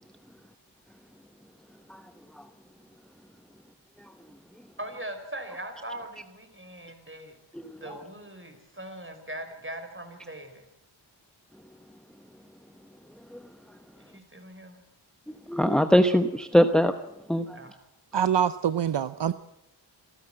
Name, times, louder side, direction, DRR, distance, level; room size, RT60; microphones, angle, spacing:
voice 1, 4.8-7.3 7.8-10.5 14.1-14.8 17.5-17.7, right 1 dB, 25° right, 6 dB, 4.8 m, -40 dB
voice 2, 7.5-8.0 13.3-13.4 15.5-16.9 17.3-17.6, equal, ahead, 9 dB, 1.0 m, -22 dB
voice 3, 18.1-19.3, right 9 dB, 65° right, 14 dB, 0.7 m, -25 dB
27.0 x 13.5 x 7.7 m, 0.85 s
cardioid pair, 45°, 46 cm